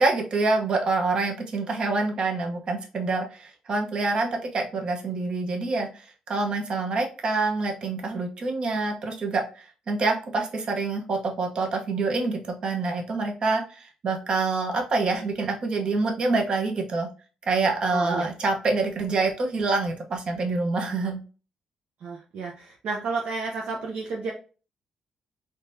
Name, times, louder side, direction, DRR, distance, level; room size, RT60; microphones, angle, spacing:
voice 1, 0.0-5.9 6.3-17.1 17.5-21.2, right 3 dB, 50° right, 3 dB, 0.9 m, -26 dB
voice 2, 17.9-18.3 22.0-24.3, right 4 dB, 80° right, -1 dB, 0.7 m, -31 dB
3.8 x 3.3 x 2.6 m, 0.35 s
cardioid pair, 120°, 2 cm